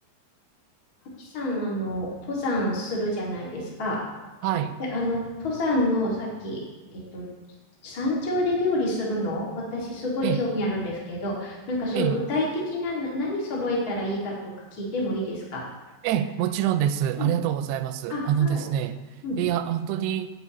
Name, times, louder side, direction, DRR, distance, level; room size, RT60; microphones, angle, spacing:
voice 1, 1.2-4.0 4.9-6.6 6.9-7.3 7.8-14.3 14.7-15.6 17.2-17.3 18.1-18.6 19.2-19.4, left 1 dB, 35° left, -4 dB, 1.6 m, -28 dB
voice 2, 4.4-4.8 10.2-10.4 11.9-12.2 16.0-19.0 19.4-20.3, right 10 dB, 85° right, 11 dB, 2.7 m, -25 dB
16.0 x 6.2 x 3.0 m, 1.2 s
omnidirectional pair, 4.9 m